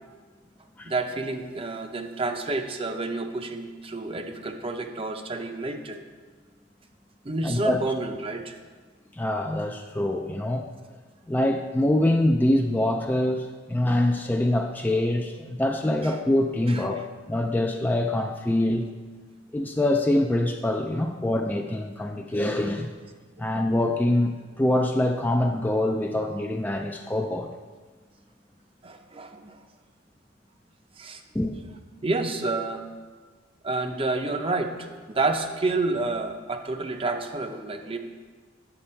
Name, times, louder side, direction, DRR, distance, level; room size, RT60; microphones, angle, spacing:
voice 1, 0.8-6.0 7.2-8.5 16.0-16.1 16.7-16.8 23.4-23.5 28.8-29.6 31.0-31.2 32.0-32.8 33.6-38.0, right 3 dB, 30° right, 6 dB, 0.6 m, -29 dB
voice 2, 7.4-7.8 9.1-10.7 11.3-17.0 17.3-18.9 19.5-22.9 23.4-27.5 31.3-31.5, left 1 dB, 10° left, 4 dB, 0.3 m, -24 dB
8.4 x 6.6 x 4.3 m, 1.4 s
head